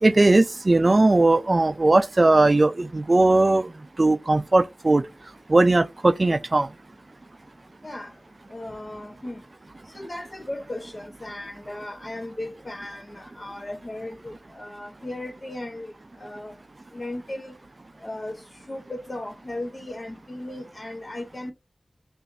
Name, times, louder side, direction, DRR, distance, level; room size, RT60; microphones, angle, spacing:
voice 1, 0.0-3.7 4.0-5.0 5.5-6.7, right 2 dB, 50° right, 0.3 m, -18 dB
voice 2, 7.8-8.2 8.5-9.4 9.9-16.5 16.9-17.5 18.0-21.5, left 1 dB, 45° left, 0.7 m, -36 dB
5.5 x 2.5 x 2.6 m
cardioid pair, 40°, 0 cm